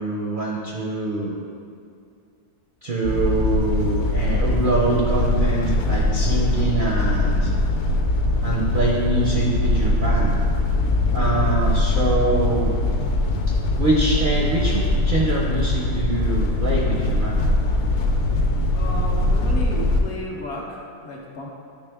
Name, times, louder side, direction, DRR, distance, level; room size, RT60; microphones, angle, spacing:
voice 1, 0.0-1.4 2.8-7.5 8.4-10.3 11.1-12.8 13.8-17.4, right 2 dB, 60° right, -3 dB, 0.5 m, -24 dB
sound 1, 3.0-20.0, left 2 dB, 75° left, 1.1 m, -21 dB
voice 2, 18.7-21.5, left 2 dB, 60° left, -2 dB, 0.8 m, -33 dB
9.9 x 3.4 x 3.4 m, 2.3 s
omnidirectional pair, 1.6 m